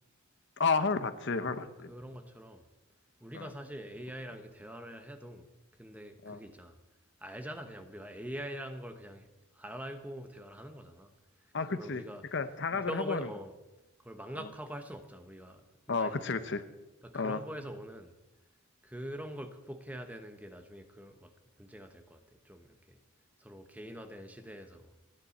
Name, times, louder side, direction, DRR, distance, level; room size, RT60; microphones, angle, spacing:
voice 1, 0.6-1.9 3.3-3.5 6.2-6.4 11.5-12.0 12.3-13.3 15.9-16.6 17.1-17.4, left 4 dB, 55° left, 10 dB, 0.9 m, -31 dB
voice 2, 1.4-2.6 3.2-5.5 5.8-6.8 7.2-9.3 9.5-11.1 11.4-12.3 12.7-13.5 14.0-16.2 17.0-18.1 18.8-23.0 23.4-25.0, equal, 5° right, 7 dB, 1.0 m, -44 dB
29.0 x 9.8 x 4.3 m, 1.0 s
head